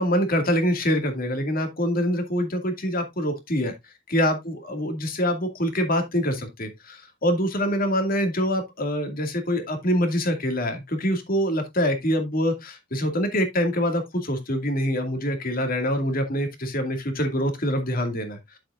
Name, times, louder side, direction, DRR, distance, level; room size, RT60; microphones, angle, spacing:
voice 1, 0.0-3.7 4.1-18.4, equal, 50° left, 2.2 m, -25 dB
9.7 x 7.5 x 2.5 m
head